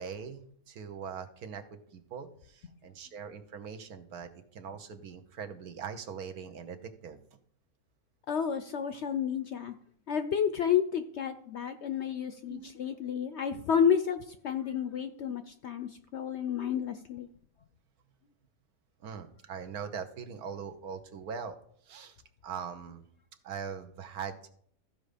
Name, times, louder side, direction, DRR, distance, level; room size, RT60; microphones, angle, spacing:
voice 1, 0.0-7.2 12.5-12.7 19.0-21.6 21.8-22.2 22.4-23.0 23.4-24.5, right 6 dB, 75° right, 7 dB, 1.4 m, -41 dB
voice 2, 8.3-9.7 10.1-17.3, left 8 dB, 65° left, 9 dB, 0.7 m, -30 dB
14.5 x 5.2 x 5.0 m, 0.63 s
omnidirectional pair, 1.6 m